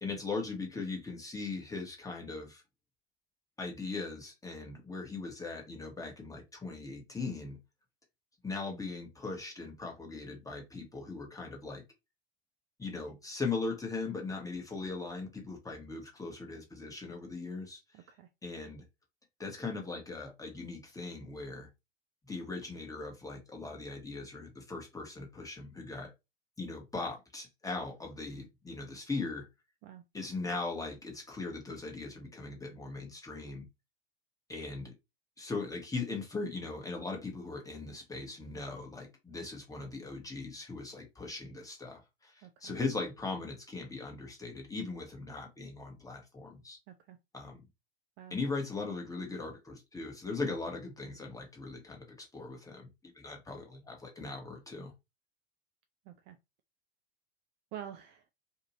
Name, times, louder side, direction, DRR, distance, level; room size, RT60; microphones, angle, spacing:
voice 1, 0.0-2.6 3.6-7.6 8.4-11.8 12.8-17.8 18.4-18.8 19.4-21.7 22.2-26.1 26.6-29.5 30.1-33.7 34.5-34.9 35.4-46.8 47.3-47.6 48.3-52.9 53.1-54.9, left 3 dB, 10° left, 1.1 m, -39 dB
voice 2, 17.9-18.3 29.8-30.0 42.4-42.7 46.9-47.2 48.2-48.3 56.1-56.4 57.7-58.2, right 10 dB, 40° right, 0.4 m, -47 dB
2.7 x 2.5 x 2.9 m
hypercardioid pair, 80°, 30 cm